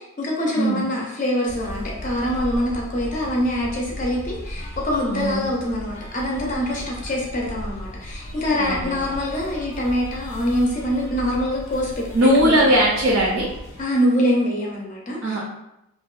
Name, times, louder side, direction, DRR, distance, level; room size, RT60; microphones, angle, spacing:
voice 1, 0.0-12.5 13.8-15.4, equal, 35° left, -2 dB, 0.4 m, -24 dB
sound 1, 1.5-13.8, equal, 85° left, 0.5 m, -36 dB
voice 2, 5.1-5.5 8.6-9.1 12.1-13.5 15.2-15.4, right 1 dB, 70° right, -3 dB, 0.4 m, -19 dB
2.5 x 2.1 x 2.3 m, 0.87 s
head